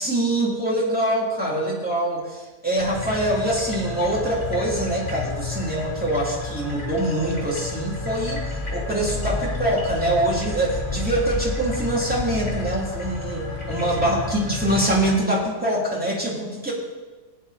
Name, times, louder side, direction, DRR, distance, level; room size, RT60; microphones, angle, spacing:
voice 1, 0.0-8.4 8.7-16.7, right 1 dB, 5° right, -4 dB, 3.0 m, -24 dB
sound 1, 2.8-15.0, left 4 dB, 35° left, 3.1 m, -31 dB
17.0 x 9.7 x 4.2 m, 1.2 s
omnidirectional pair, 1.5 m